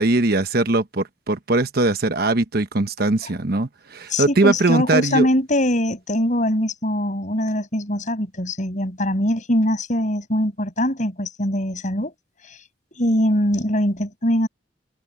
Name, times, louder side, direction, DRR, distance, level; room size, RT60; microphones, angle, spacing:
voice 1, 0.0-5.3, right 2 dB, 55° right, 1.1 m, -20 dB
voice 2, 4.1-12.1 12.5-12.6 13.0-14.5, left 1 dB, 40° left, 7.7 m, -22 dB
head